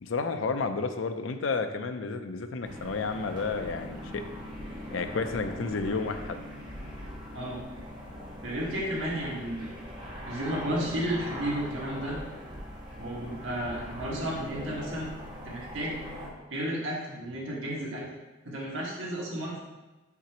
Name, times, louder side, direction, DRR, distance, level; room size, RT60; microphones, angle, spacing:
voice 1, 0.0-4.2 4.9-6.4, left 4 dB, 85° left, 8 dB, 0.5 m, -31 dB
sound 1, 2.6-16.3, equal, 25° right, 1.3 m, -41 dB
voice 2, 8.4-9.7 10.3-12.2 13.0-15.1 15.4-16.0 16.5-18.0 18.4-19.6, right 1 dB, 80° right, -4 dB, 1.8 m, -33 dB
5.9 x 5.8 x 3.0 m, 1.1 s
head